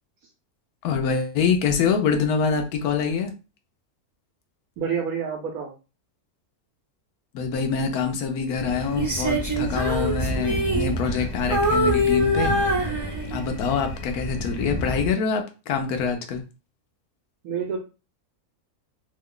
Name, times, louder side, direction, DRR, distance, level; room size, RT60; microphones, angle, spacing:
voice 1, 0.8-3.3 7.3-12.5 13.3-16.4, left 6 dB, 75° left, 5 dB, 1.1 m, -25 dB
voice 2, 4.8-5.7 17.4-17.8, right 7 dB, 75° right, 3 dB, 1.0 m, -28 dB
sound 1, 8.5-15.1, equal, 35° left, 1.0 m, -31 dB
Female singing, 9.0-11.3 11.5-13.6 14.1-14.3, equal, 15° right, 0.9 m, -24 dB
3.0 x 2.2 x 3.6 m, 0.32 s
omnidirectional pair, 1.6 m